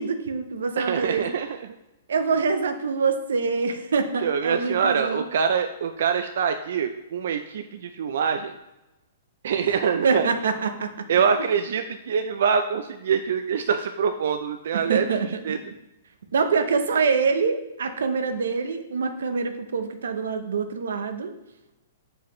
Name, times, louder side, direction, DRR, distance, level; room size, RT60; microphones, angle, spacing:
voice 1, 0.0-1.2 2.1-5.2 10.0-11.1 14.7-15.6 16.3-21.3, right 5 dB, 90° right, 8 dB, 0.7 m, -25 dB
voice 2, 0.8-1.7 4.2-8.6 9.4-10.3 11.1-15.6, right 6 dB, 65° right, 7 dB, 0.4 m, -25 dB
7.2 x 4.9 x 3.1 m, 0.99 s
hypercardioid pair, 165°, 0 cm